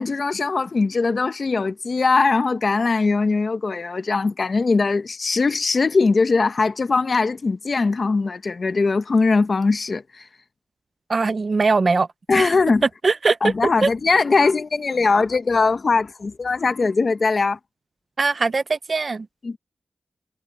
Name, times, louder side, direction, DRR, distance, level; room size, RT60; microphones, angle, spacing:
voice 1, 0.0-10.3 12.3-12.8 13.4-17.6 19.4-19.6, left 4 dB, 60° left, 0.9 m, -20 dB
voice 2, 11.1-12.1 12.4-12.5 13.0-13.4 13.8-13.9 18.2-19.3, right 4 dB, 60° right, 0.6 m, -20 dB
wide cardioid pair, 70°, 0 cm